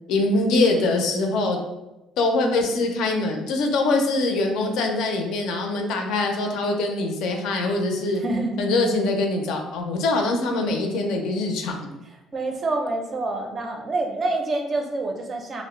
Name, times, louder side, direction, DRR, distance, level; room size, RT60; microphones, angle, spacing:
voice 1, 0.1-1.6 2.2-8.2 8.6-11.7, left 2 dB, 75° left, 3 dB, 0.4 m, -23 dB
voice 2, 8.2-8.7 12.3-15.6, right 2 dB, 30° right, 2 dB, 0.4 m, -27 dB
2.5 x 2.0 x 3.0 m, 0.98 s
cardioid pair, 130°, 0 cm